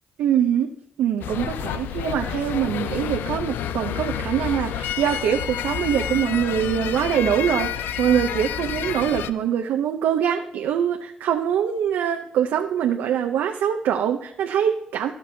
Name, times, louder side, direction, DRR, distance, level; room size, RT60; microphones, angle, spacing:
voice 1, 0.2-0.7 1.0-15.1, right 9 dB, 80° right, 4 dB, 0.6 m, -23 dB
sound 1, 1.2-9.3, left 9 dB, 80° left, 0.4 m, -29 dB
17.0 x 6.0 x 2.7 m, 0.76 s
hypercardioid pair, 40°, 3 cm